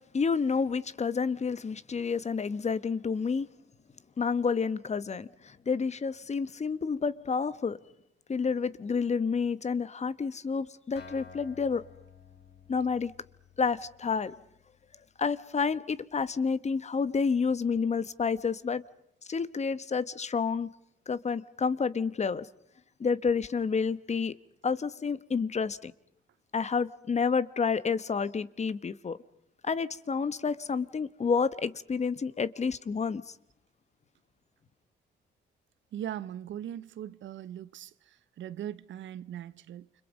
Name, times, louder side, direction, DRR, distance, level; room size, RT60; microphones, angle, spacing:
voice 1, 0.1-3.5 4.2-7.8 8.3-11.8 12.7-13.1 13.6-14.3 15.2-18.8 19.3-20.7 21.1-22.5 23.0-24.3 24.6-25.9 26.5-29.2 29.6-33.3, left 5 dB, 35° left, 1.2 m, -29 dB
Acoustic guitar, 11.0-14.8, left 7 dB, 60° left, 3.9 m, -53 dB
voice 2, 35.9-39.9, right 10 dB, 70° right, 0.9 m, -40 dB
29.5 x 26.0 x 5.2 m
cardioid pair, 90°, 20 cm